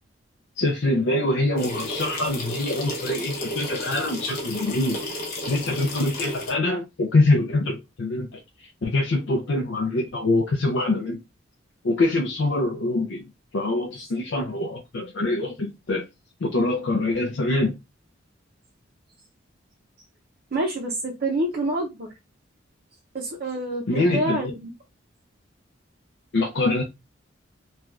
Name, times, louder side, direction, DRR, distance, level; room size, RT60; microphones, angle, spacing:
voice 1, 0.6-5.0 5.5-11.2 11.8-13.2 13.5-16.0 16.4-17.7 23.9-24.5 26.3-26.8, left 2 dB, 65° left, 0.5 m, -24 dB
sound 1, 1.6-6.5, left 1 dB, 50° left, 0.8 m, -32 dB
voice 2, 20.5-22.1 23.1-24.7, right 1 dB, 50° right, 0.5 m, -27 dB
3.2 x 2.2 x 2.4 m
head